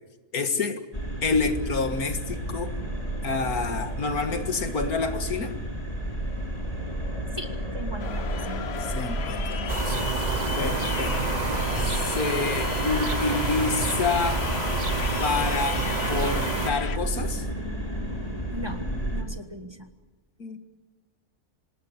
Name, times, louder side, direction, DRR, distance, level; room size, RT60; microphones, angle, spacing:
voice 1, 0.3-0.8 1.2-2.7 3.2-5.6 8.8-10.2 10.6-11.1 11.8-14.5 15.2-17.5 20.4-20.6, left 4 dB, 75° left, 8 dB, 2.2 m, -28 dB
sound 1, 0.9-19.2, right 1 dB, 25° left, 3.9 m, -32 dB
voice 2, 7.4-8.7 18.5-19.9, equal, 15° right, 7 dB, 1.5 m, -38 dB
sound 2, 8.0-17.0, left 7 dB, 50° left, 1.0 m, -34 dB
sound 3, 9.7-16.7, right 5 dB, 35° right, 0.9 m, -29 dB
27.0 x 18.0 x 8.2 m, 1.2 s
omnidirectional pair, 1.6 m